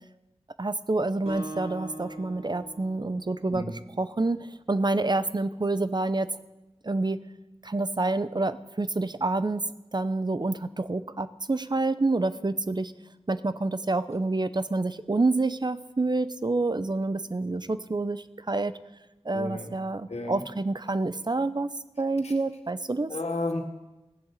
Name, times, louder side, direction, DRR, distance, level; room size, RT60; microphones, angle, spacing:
voice 1, 0.6-6.3 6.8-7.2 7.6-9.6 9.9-12.9 13.3-18.7 19.2-21.7 22.0-23.1, right 2 dB, 40° right, 14 dB, 0.7 m, -28 dB
Acoustic guitar, 1.3-4.0, right 1 dB, 70° right, 5.2 m, -41 dB
voice 2, 19.3-19.7 20.1-20.4 22.2-22.3 23.1-23.6, left 2 dB, 75° left, 3 dB, 2.2 m, -32 dB
16.5 x 8.0 x 8.1 m, 1.0 s
wide cardioid pair, 55°, 11 cm